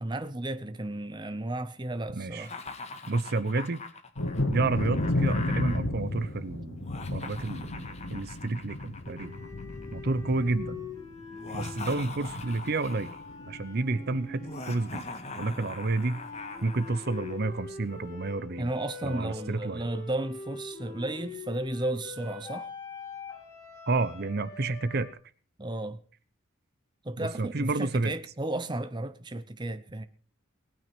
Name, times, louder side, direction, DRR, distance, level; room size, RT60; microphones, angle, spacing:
voice 1, 0.0-2.5 18.6-22.7 25.6-26.0 27.0-30.0, right 1 dB, 20° right, 0.8 m, -33 dB
voice 2, 2.1-2.5 3.1-3.8 4.5-6.9 7.1-9.4 9.9-10.9 11.5-13.1 13.5-15.0 15.4-16.2 16.6-18.7 19.0-19.8 23.9-25.1 27.2-28.1, right 3 dB, 50° right, 0.7 m, -30 dB
Laughter, 2.4-5.8 6.8-10.1 11.3-13.3 14.4-17.4, left 3 dB, 30° left, 1.8 m, -43 dB
Thunder, 4.2-13.6 13.8-14.6 15.0-15.1 15.5-15.7, left 1 dB, 65° left, 2.3 m, -34 dB
sound 1, 9.0-15.6 16.1-25.1, left 4 dB, 15° left, 5.2 m, -44 dB
19.0 x 9.3 x 6.0 m
head